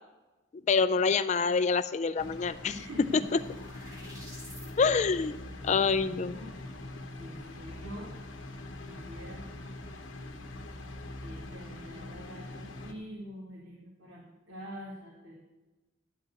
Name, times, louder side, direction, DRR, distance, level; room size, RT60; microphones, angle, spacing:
voice 1, 0.7-2.7 4.8-5.4 5.6-6.3, left 5 dB, 35° left, 14 dB, 0.3 m, -26 dB
sound 1, 2.2-12.9, left 2 dB, 65° left, 1.2 m, -43 dB
sound 2, 2.3-4.7, equal, 15° right, 2.2 m, -52 dB
voice 2, 2.7-3.4 4.9-5.0 5.7-6.5 7.2-8.2 8.8-9.5 11.2-15.4, equal, 65° right, -4 dB, 2.0 m, -45 dB
12.0 x 4.8 x 8.1 m, 1.1 s
head